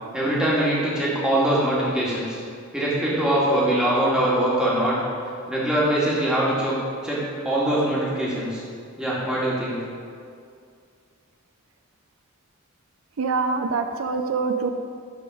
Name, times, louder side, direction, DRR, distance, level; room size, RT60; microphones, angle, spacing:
voice 1, 0.1-2.4 2.7-4.9 5.5-6.8 7.0-8.6 9.0-9.8, right 1 dB, 5° right, -7 dB, 2.0 m, -22 dB
voice 2, 13.2-14.7, right 4 dB, 80° right, 7 dB, 0.5 m, -24 dB
12.0 x 4.3 x 4.8 m, 2.3 s
head